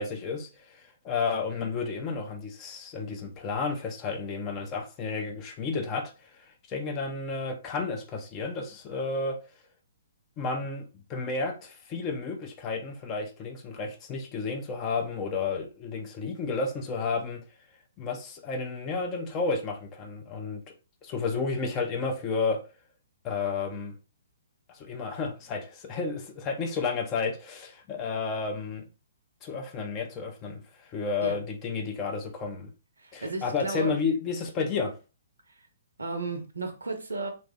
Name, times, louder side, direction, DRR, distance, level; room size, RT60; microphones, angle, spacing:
voice 1, 0.0-9.4 10.4-17.4 18.0-20.6 21.0-22.6 23.2-23.9 24.7-28.9 29.4-32.7 33.1-34.9, left 4 dB, 25° left, 0.6 m, -32 dB
voice 2, 33.0-33.9 36.0-37.3, right 3 dB, 70° right, 0.8 m, -33 dB
3.3 x 2.5 x 3.5 m
figure-of-eight pair, 120°, 0 cm